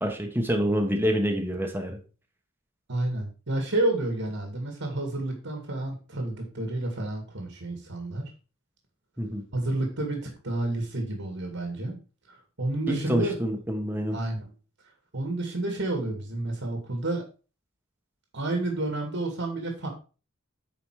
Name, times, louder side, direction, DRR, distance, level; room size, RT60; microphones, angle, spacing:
voice 1, 0.0-2.0 9.2-9.4 12.9-14.2, equal, 10° right, 3 dB, 1.5 m, -27 dB
voice 2, 2.9-8.2 9.5-12.0 12.3-13.4 14.1-14.4 15.1-17.2 18.3-19.9, right 2 dB, 65° right, 3 dB, 2.3 m, -30 dB
9.2 x 5.0 x 4.9 m, 0.35 s
head